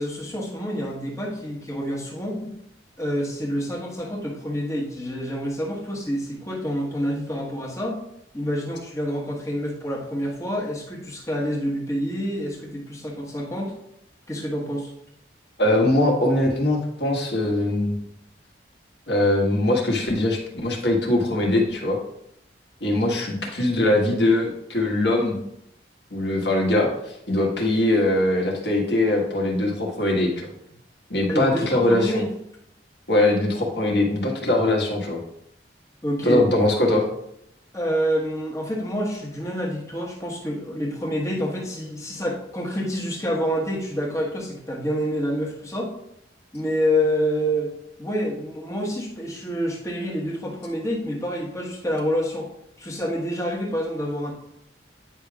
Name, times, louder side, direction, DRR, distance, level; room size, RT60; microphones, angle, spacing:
voice 1, 0.0-2.5 3.0-8.0 8.3-13.7 14.3-14.9 31.3-32.3 36.0-36.5 37.7-45.9 46.5-47.7 48.0-52.5 52.8-54.3, equal, 20° left, -2 dB, 1.3 m, -27 dB
voice 2, 15.6-17.9 19.1-22.0 22.8-25.4 26.1-30.3 31.1-32.2 33.1-35.2 36.2-37.0, left 1 dB, 65° left, 0 dB, 1.6 m, -21 dB
9.7 x 5.2 x 2.4 m, 0.78 s
head